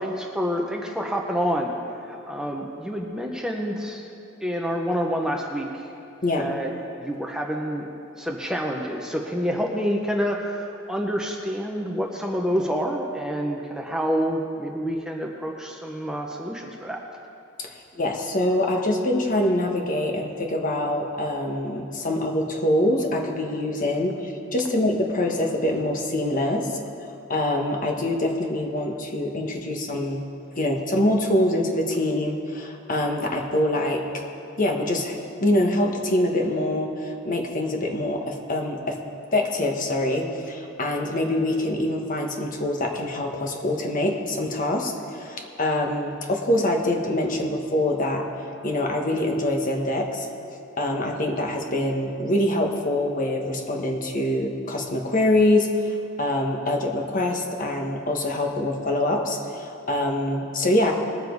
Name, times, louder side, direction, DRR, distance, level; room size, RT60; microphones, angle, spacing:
voice 1, 0.0-1.7 2.0-4.1 4.4-5.9 6.3-6.7 7.0-7.9 8.1-17.0, equal, 5° right, 0 dB, 0.8 m, -28 dB
voice 2, 17.9-26.7 27.3-30.2 30.6-34.0 34.6-39.0 39.3-48.3 48.6-50.3 50.8-60.9, left 1 dB, 40° left, 2 dB, 1.4 m, -24 dB
20.5 x 7.5 x 4.6 m, 2.6 s
head